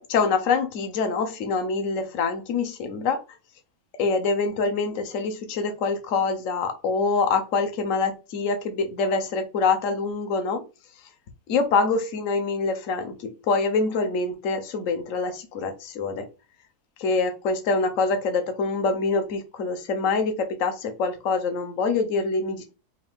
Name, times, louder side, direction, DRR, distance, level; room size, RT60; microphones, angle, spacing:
voice 1, 0.0-3.2 4.0-10.6 11.5-16.3 17.0-22.6, left 4 dB, 60° left, 1.2 m, -25 dB
5.5 x 2.6 x 3.5 m
omnidirectional pair, 1.6 m